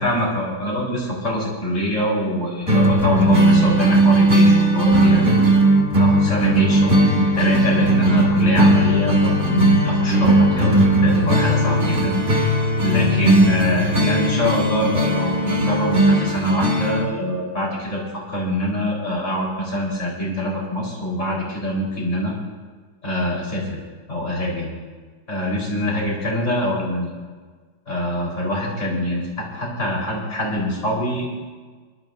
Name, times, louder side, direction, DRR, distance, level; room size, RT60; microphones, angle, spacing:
voice 1, 0.0-5.2 6.0-22.3 23.0-23.8 24.1-24.7 25.3-27.1 27.9-31.3, left 1 dB, 35° left, -4 dB, 4.6 m, -24 dB
sound 1, 2.7-17.0, right 1 dB, 25° right, 1.9 m, -17 dB
25.5 x 12.5 x 2.6 m, 1.4 s
omnidirectional pair, 2.1 m